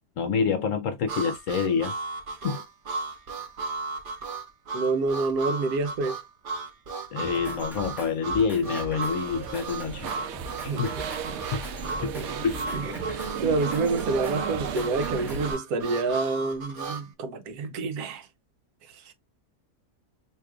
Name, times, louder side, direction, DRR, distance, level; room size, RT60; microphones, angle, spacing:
voice 1, 0.2-2.0 2.4-2.6 7.1-10.1 10.6-10.9 11.5-11.6 12.0-12.1 12.4-12.8, left 6 dB, 65° left, 0.8 m, -27 dB
Harmonica, 1.1-17.1, right 3 dB, 50° right, 0.7 m, -35 dB
voice 2, 4.7-6.2 10.7-11.0 12.1-12.2 12.7-12.9 13.4-18.3 18.9-19.1, right 3 dB, 70° right, 1.1 m, -28 dB
Drum kit, 7.2-15.5, right 1 dB, ahead, 1.0 m, -42 dB
sound 1, 9.1-15.6, right 7 dB, 90° right, 0.6 m, -34 dB
4.8 x 2.9 x 2.3 m
omnidirectional pair, 1.7 m